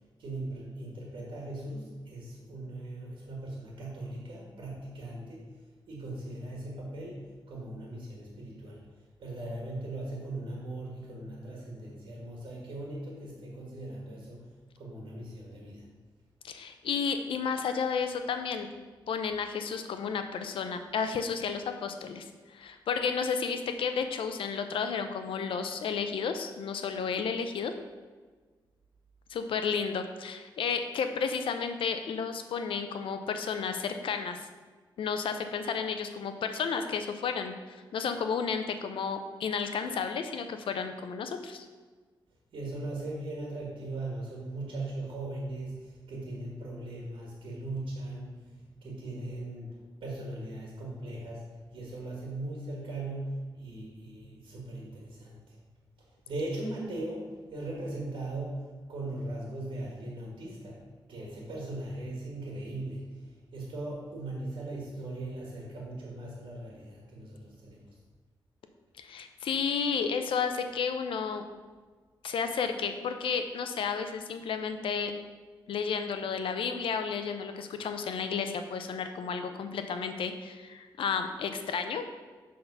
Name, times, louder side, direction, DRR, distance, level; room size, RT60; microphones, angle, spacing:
voice 1, 0.2-5.5 5.9-14.5 14.8-15.8 42.5-55.5 56.3-60.8 61.1-67.8, right 2 dB, 70° right, -3 dB, 1.7 m, -39 dB
voice 2, 16.4-18.7 19.1-27.7 29.3-34.5 35.0-41.7 69.0-71.5 72.2-75.1 75.7-82.0, left 6 dB, 80° left, 7 dB, 0.6 m, -32 dB
6.9 x 3.7 x 5.5 m, 1.4 s
cardioid pair, 70°, 9 cm